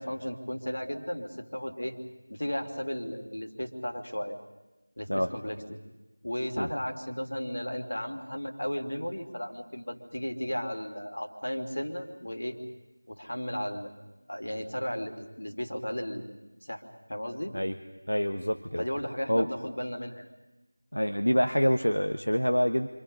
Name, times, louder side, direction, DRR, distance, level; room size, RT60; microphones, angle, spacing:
voice 1, 0.0-2.0 2.3-4.4 5.0-5.8 6.2-12.6 13.1-13.9 14.3-16.8 17.1-17.5 18.8-20.3, equal, 65° left, 4 dB, 3.1 m, -35 dB
voice 2, 18.1-18.8 19.3-19.5 20.9-22.9, equal, 85° left, 6 dB, 1.3 m, -26 dB
28.0 x 26.0 x 5.5 m, 1.1 s
figure-of-eight pair, 170°, 0 cm